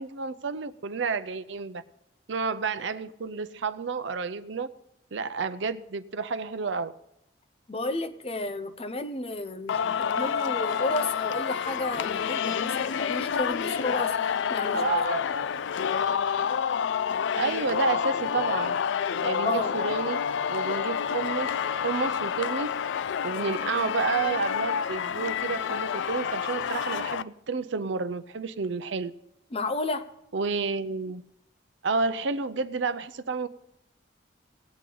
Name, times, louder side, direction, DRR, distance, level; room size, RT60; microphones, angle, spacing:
voice 1, 0.0-1.8 2.3-4.7 5.1-6.9 14.7-15.3 17.4-18.8 19.2-20.2 20.5-22.8 23.2-29.1 30.3-31.2 31.8-33.5, right 4 dB, 80° right, 0.6 m, -30 dB
voice 2, 7.7-14.9 19.4-19.7 29.5-30.1, left 2 dB, 30° left, 0.6 m, -32 dB
Singing, 9.7-27.2, left 7 dB, 75° left, 0.4 m, -28 dB
18.5 x 8.4 x 3.9 m
head